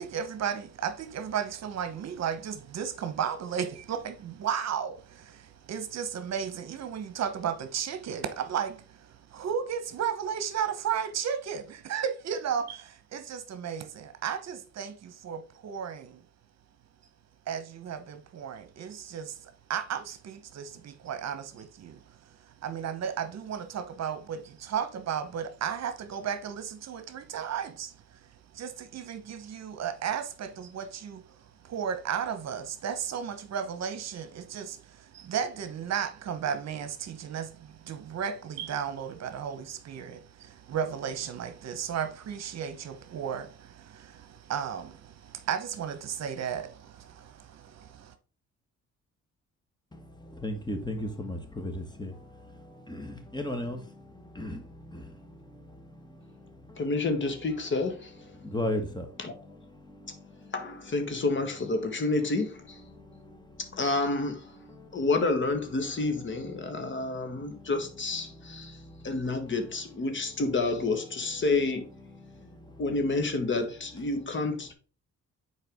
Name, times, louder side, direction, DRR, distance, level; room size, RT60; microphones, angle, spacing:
voice 1, 0.0-16.2 17.5-48.1, right 8 dB, 60° right, 1.0 m, -34 dB
voice 2, 49.9-65.1 65.7-74.7, left 1 dB, 15° left, 1.6 m, -41 dB
voice 3, 56.8-58.1 59.2-59.3 60.5-62.8 63.8-64.5 64.9-68.8 69.0-71.9 72.8-74.7, left 3 dB, 40° left, 1.4 m, -29 dB
6.6 x 4.6 x 3.5 m
cardioid pair, 90°, 30 cm